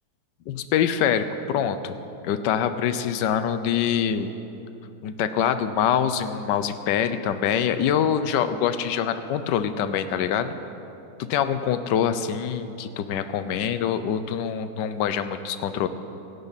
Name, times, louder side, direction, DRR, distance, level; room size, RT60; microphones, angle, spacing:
voice 1, 0.5-2.0 2.2-4.3 5.0-10.5 11.3-15.9, left 8 dB, 80° left, 10 dB, 1.3 m, -25 dB
26.0 x 12.0 x 4.2 m, 2.8 s
omnidirectional pair, 1.9 m